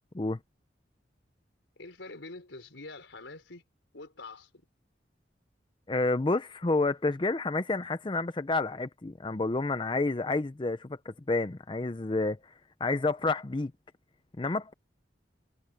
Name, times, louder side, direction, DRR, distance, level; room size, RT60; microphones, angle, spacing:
voice 1, 1.8-3.6 3.9-4.5, left 3 dB, 90° left, 4.4 m, -45 dB
voice 2, 5.9-12.5 12.8-13.7 14.4-14.7, left 3 dB, 25° left, 0.5 m, -29 dB
head